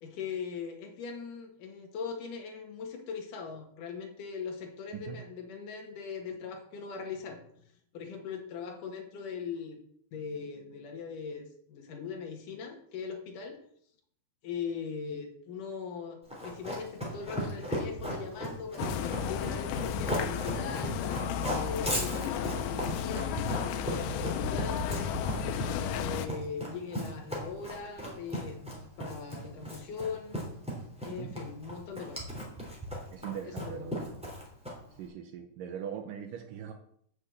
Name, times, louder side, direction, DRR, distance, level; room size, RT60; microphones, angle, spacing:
voice 1, 0.0-7.4 7.9-9.8 10.1-13.6 14.4-25.1 25.7-30.4 31.0-32.2 33.4-34.0, left 6 dB, 60° left, 3 dB, 2.8 m, -40 dB
Run, 16.3-35.0, equal, ahead, 2.7 m, -36 dB
sound 1, 18.8-26.3, left 8 dB, 85° left, 2.9 m, -33 dB
voice 2, 33.1-34.2 34.9-36.7, right 8 dB, 80° right, 6 dB, 2.0 m, -41 dB
7.9 x 6.6 x 7.7 m, 0.66 s
omnidirectional pair, 4.8 m